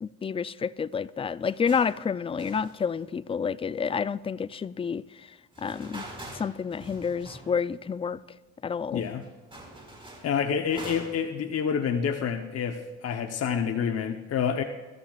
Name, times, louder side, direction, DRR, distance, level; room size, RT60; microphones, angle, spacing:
voice 1, 0.0-5.0 5.6-6.1 6.3-8.2 8.6-9.0, left 6 dB, 20° left, 0.3 m, -29 dB
sound 1, 1.4-2.0 2.4-3.4 5.5-7.7 8.0-8.1 8.7-8.8 8.9-11.3, right 1 dB, 15° right, 4.7 m, -45 dB
voice 2, 8.9-9.2 10.2-14.6, left 7 dB, 55° left, 0.9 m, -28 dB
22.0 x 13.5 x 2.4 m
cardioid pair, 90°, 30 cm